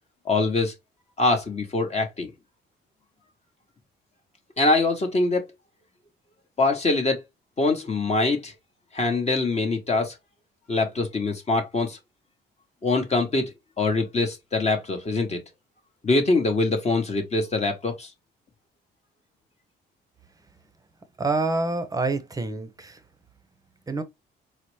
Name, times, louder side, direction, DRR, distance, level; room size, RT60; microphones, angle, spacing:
voice 1, 0.2-0.7 1.2-2.3 4.6-5.5 6.6-7.2 7.6-8.5 8.9-10.1 10.7-12.0 12.8-13.5 13.8-15.4 16.0-18.1, left 3 dB, 35° left, 0.9 m, -23 dB
voice 2, 21.2-23.0 23.9-24.0, right 3 dB, 20° right, 0.6 m, -27 dB
4.1 x 2.0 x 3.1 m
cardioid pair, 90°, 20 cm